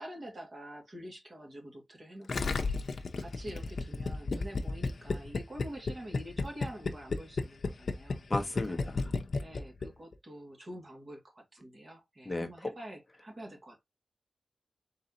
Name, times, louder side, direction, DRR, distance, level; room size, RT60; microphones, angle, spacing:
voice 1, 0.0-9.1 9.4-13.8, right 1 dB, 45° right, 1.9 m, -47 dB
Gurgling, 2.3-9.9 10.1-10.2, left 3 dB, 70° left, 0.6 m, -32 dB
voice 2, 8.3-9.1 12.3-12.5, left 2 dB, 30° left, 0.8 m, -34 dB
4.1 x 3.9 x 2.8 m
wide cardioid pair, 120°, 0 cm